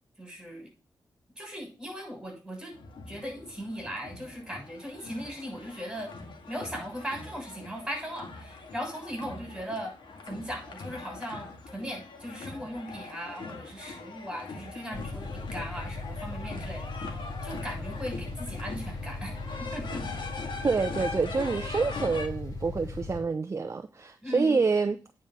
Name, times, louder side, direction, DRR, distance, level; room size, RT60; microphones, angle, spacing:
voice 1, 0.2-0.7 1.4-2.7 3.1-6.1 6.5-10.0 10.3-17.1 17.4-19.3 19.6-20.0 24.2-24.6, equal, 5° right, 6.8 m, -38 dB
sound 1, 2.7-22.3, left 4 dB, 75° left, 2.1 m, -42 dB
sound 2, 14.9-23.2, left 2 dB, 40° left, 4.5 m, -38 dB
voice 2, 20.6-25.0, right 4 dB, 35° right, 0.7 m, -27 dB
9.4 x 5.1 x 7.7 m
wide cardioid pair, 95°, 8 cm